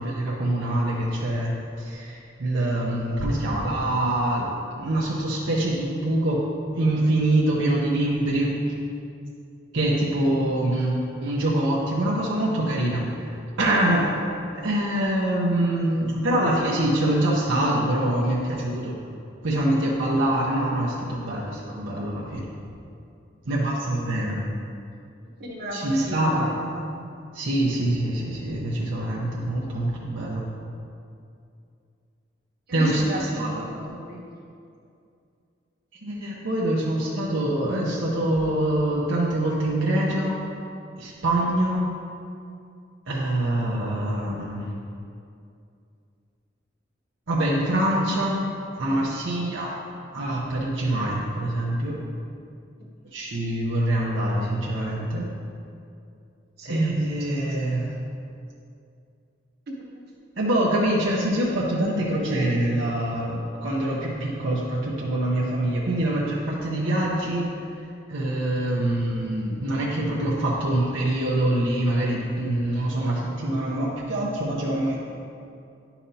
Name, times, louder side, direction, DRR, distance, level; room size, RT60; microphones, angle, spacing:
voice 1, 0.0-1.5 1.8-6.4 6.7-8.5 9.7-13.1 13.6-14.2 14.5-19.0 19.4-22.5 23.5-24.4 25.7-26.5 27.3-30.4 32.7-33.7 36.0-40.4 41.0-41.8 43.1-44.6 47.3-48.4 48.8-49.7 50.1-52.0 53.1-55.2 56.6-57.9 60.4-67.5 68.1-75.0, right 1 dB, 75° right, -5 dB, 0.8 m, -24 dB
voice 2, 25.4-27.1 32.7-34.2 41.4-41.5 56.6-57.0 57.4-57.7 59.9-60.0, right 1 dB, 55° right, -2 dB, 1.2 m, -35 dB
9.9 x 5.7 x 2.8 m, 2.5 s
head